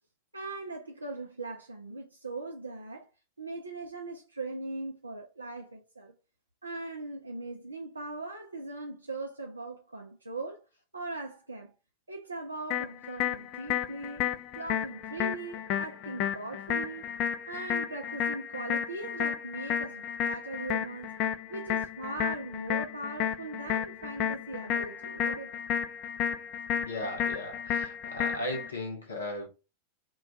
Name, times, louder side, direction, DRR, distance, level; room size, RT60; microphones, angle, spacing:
voice 1, 0.3-3.1 3.4-6.1 6.6-10.6 10.9-11.7 12.1-17.1 17.5-21.2 21.5-25.6, right 2 dB, 80° right, 0.4 m, -40 dB
sound 1, 12.7-28.7, left 9 dB, 35° left, 0.3 m, -32 dB
voice 2, 26.7-29.5, left 1 dB, 70° left, 0.6 m, -37 dB
2.2 x 2.2 x 3.7 m
figure-of-eight pair, 90°, 0 cm